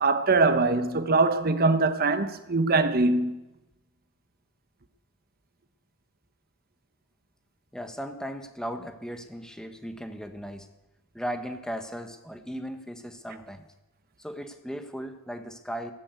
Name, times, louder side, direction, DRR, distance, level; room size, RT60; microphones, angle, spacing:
voice 1, 0.0-3.4, right 3 dB, 45° right, 1.0 m, -23 dB
voice 2, 7.7-10.7 11.1-13.7 14.2-15.9, equal, 5° left, 1.2 m, -37 dB
15.5 x 11.0 x 8.2 m
head